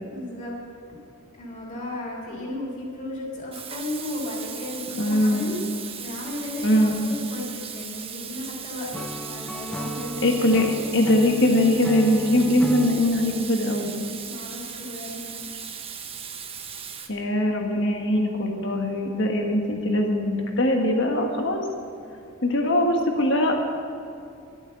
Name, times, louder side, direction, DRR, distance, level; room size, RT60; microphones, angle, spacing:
voice 1, 0.0-0.5 1.4-5.6 6.0-8.9 9.2-10.6 14.2-15.4, left 1 dB, 35° left, -3 dB, 3.3 m, -34 dB
Water tap faucet / Sink (filling or washing), 3.5-17.1, right 7 dB, 25° right, 0.9 m, -37 dB
voice 2, 5.0-5.4 6.6-6.9 10.2-10.7 10.9-13.9 17.1-21.6 22.4-23.5, left 1 dB, 60° left, 2 dB, 1.5 m, -21 dB
Acoustic guitar / Strum, 8.9-13.0, equal, 5° left, 0.5 m, -35 dB
12.0 x 8.6 x 7.4 m, 2.5 s
head